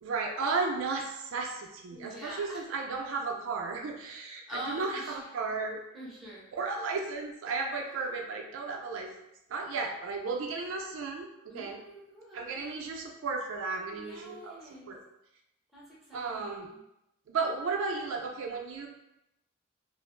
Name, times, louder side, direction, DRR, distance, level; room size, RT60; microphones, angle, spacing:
voice 1, 0.0-5.8 6.5-9.1 9.5-11.8 12.3-14.6 14.9-15.0 16.1-16.7 17.3-18.9, right 4 dB, 70° right, 2 dB, 0.3 m, -34 dB
voice 2, 1.9-2.6 4.5-5.3 5.9-6.5 11.5-12.8 13.9-14.9 15.7-16.8, equal, ahead, -7 dB, 0.6 m, -45 dB
2.4 x 2.1 x 3.0 m, 0.86 s
head